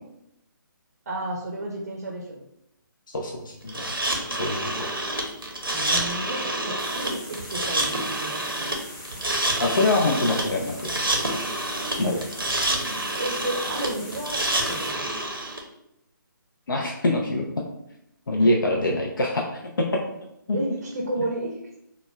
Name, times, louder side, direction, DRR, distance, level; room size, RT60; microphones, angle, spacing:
voice 1, 1.1-2.4 5.7-8.8 12.0-12.2 13.2-15.1 18.4-18.7 20.5-21.6, right 1 dB, 45° right, -1 dB, 0.5 m, -32 dB
voice 2, 3.1-3.9 4.3-4.9 9.6-10.9 12.0-12.2 16.7-17.5 18.3-19.6 20.5-20.6, left 2 dB, 65° left, 0 dB, 0.4 m, -24 dB
sound 1, 3.7-15.6, right 1 dB, 85° right, 0.7 m, -28 dB
sound 2, 6.8-14.9, equal, 20° left, 1.4 m, -41 dB
4.0 x 2.2 x 2.2 m, 0.80 s
figure-of-eight pair, 140°, 11 cm